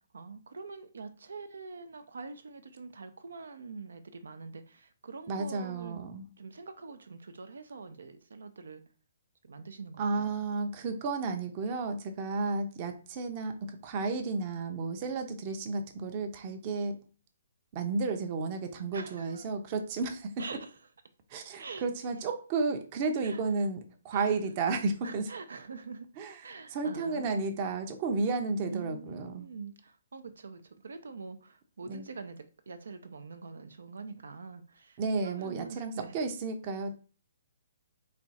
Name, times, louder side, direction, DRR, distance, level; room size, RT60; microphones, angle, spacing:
voice 1, 0.1-6.0 6.4-8.8 9.4-10.3 18.9-19.5 20.4-20.7 21.6-21.9 23.2-23.7 24.1-24.4 25.0-26.1 26.4-27.6 28.7-36.1, right 4 dB, 85° right, 0.6 m, -44 dB
voice 2, 5.3-6.3 10.0-17.0 17.7-20.2 21.3-23.8 24.0-25.3 26.2-26.4 26.7-29.5 31.9-32.1 35.0-36.9, right 4 dB, 30° right, 0.6 m, -32 dB
4.2 x 2.4 x 4.1 m
hypercardioid pair, 160°, 0 cm